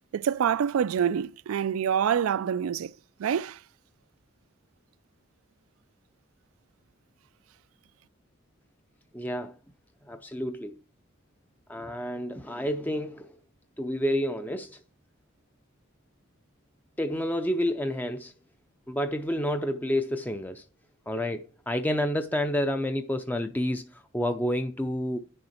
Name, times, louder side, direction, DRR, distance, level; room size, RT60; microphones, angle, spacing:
voice 1, 0.1-2.9 3.2-3.6, right 8 dB, 90° right, 0.3 m, -26 dB
voice 2, 9.1-9.6 10.0-10.8 11.7-13.4 13.8-14.8 17.0-18.3 18.9-20.7 21.1-25.2, left 1 dB, 10° left, 0.4 m, -29 dB
9.5 x 6.5 x 4.4 m
head